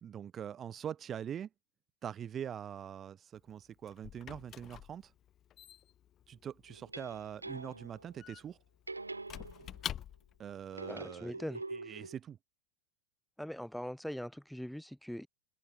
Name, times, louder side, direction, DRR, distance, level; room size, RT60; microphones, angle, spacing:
voice 1, 0.0-1.5 2.0-5.1 6.3-8.6 10.4-11.4 11.7-12.4, right 9 dB, 25° right, 0.8 m, -43 dB
Squeak / Wood, 3.3-10.5, left 11 dB, 30° left, 1.3 m, -48 dB
sound 1, 6.7-8.1 8.9-10.0 10.7-12.2, right 3 dB, 80° right, 2.4 m, -45 dB
voice 2, 10.9-11.6 11.9-12.0 13.4-15.3, equal, ahead, 2.4 m, -41 dB
open air
figure-of-eight pair, 90°, 0 cm